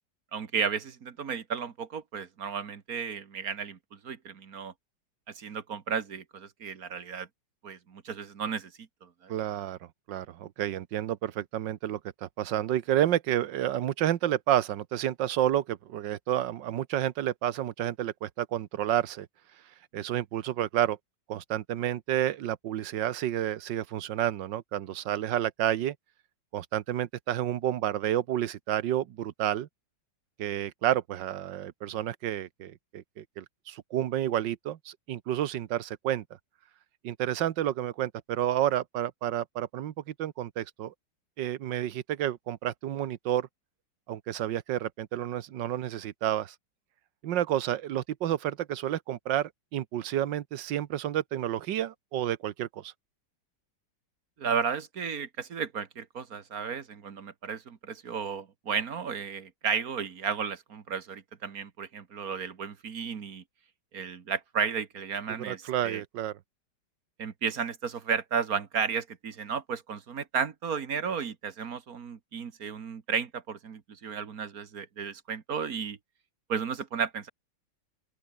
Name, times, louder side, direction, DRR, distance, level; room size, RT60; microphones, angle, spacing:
voice 1, 0.3-4.7 5.4-7.3 7.6-8.7 9.0-9.3 54.4-63.4 63.9-66.0 67.2-76.0 76.5-77.3, right 6 dB, 55° right, 1.8 m, -33 dB
voice 2, 9.3-9.8 10.1-19.3 19.9-21.0 21.3-25.9 26.5-29.7 30.4-36.2 37.0-40.9 41.4-43.5 44.1-46.5 47.2-52.9 65.5-66.3, right 12 dB, 75° right, 1.6 m, -30 dB
open air
omnidirectional pair, 2.0 m